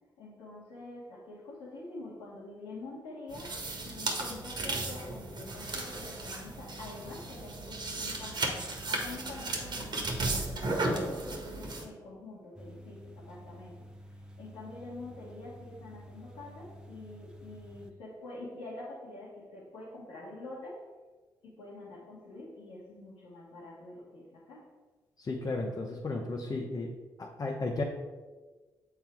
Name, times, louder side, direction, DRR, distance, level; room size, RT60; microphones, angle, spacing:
voice 1, 0.2-13.9 14.4-20.8 21.4-24.7, left 2 dB, 90° left, -10 dB, 1.6 m, -46 dB
sound 1, 3.3-11.9, right 2 dB, 55° right, 1.4 m, -35 dB
sound 2, 12.6-17.9, equal, 10° right, 0.8 m, -50 dB
voice 2, 25.2-26.9 27.2-27.8, left 2 dB, 45° left, -1 dB, 1.0 m, -34 dB
7.1 x 3.8 x 4.5 m, 1.3 s
supercardioid pair, 50°, 9 cm